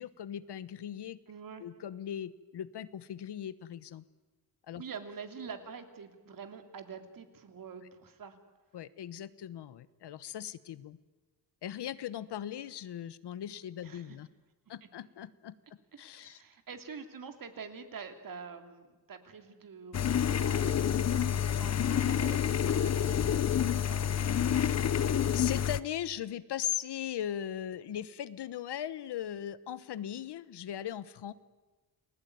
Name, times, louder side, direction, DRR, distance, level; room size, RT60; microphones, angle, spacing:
voice 1, 0.0-1.2 1.6-4.0 4.7-4.8 8.7-11.0 11.6-14.3 14.7-15.5 16.0-16.4 25.3-31.3, left 10 dB, 80° left, 16 dB, 1.2 m, -39 dB
voice 2, 1.3-1.7 4.8-8.4 13.8-14.2 16.1-24.3, right 6 dB, 55° right, 7 dB, 3.0 m, -46 dB
sound 1, 19.9-25.8, left 9 dB, 40° left, 0.8 m, -28 dB
30.0 x 20.5 x 9.5 m, 1.3 s
wide cardioid pair, 145°, 40 cm